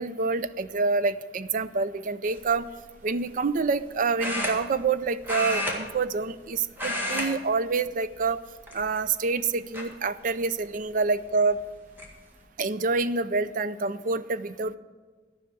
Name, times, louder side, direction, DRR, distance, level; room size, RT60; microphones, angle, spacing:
voice 1, 0.0-2.7 3.0-8.4 8.7-11.6 12.6-14.8, right 4 dB, 50° right, 14 dB, 0.4 m, -27 dB
sound 1, 2.3-2.5 4.2-5.0 5.2-6.5 6.7-7.3 7.6-7.9 8.6-9.2 9.7-9.8 11.3-11.4 11.7-12.1, equal, 10° right, 1.9 m, -31 dB
13.5 x 5.7 x 8.3 m, 1.4 s
head